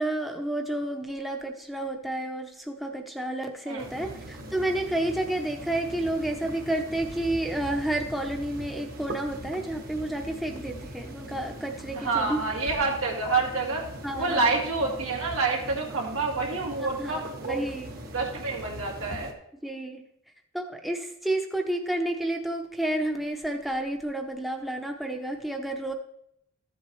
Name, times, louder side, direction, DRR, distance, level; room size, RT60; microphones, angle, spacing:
voice 1, 0.0-12.4 14.0-14.5 16.8-17.2 17.5-17.9 19.6-20.0 20.5-25.9, right 1 dB, ahead, 3 dB, 0.6 m, -30 dB
voice 2, 3.7-4.2 11.9-13.9 14.1-17.7 18.1-19.3, right 3 dB, 90° right, -1 dB, 2.1 m, -28 dB
sound 1, 3.8-19.3, right 1 dB, 45° right, 1.1 m, -41 dB
13.5 x 7.5 x 3.1 m, 0.76 s
head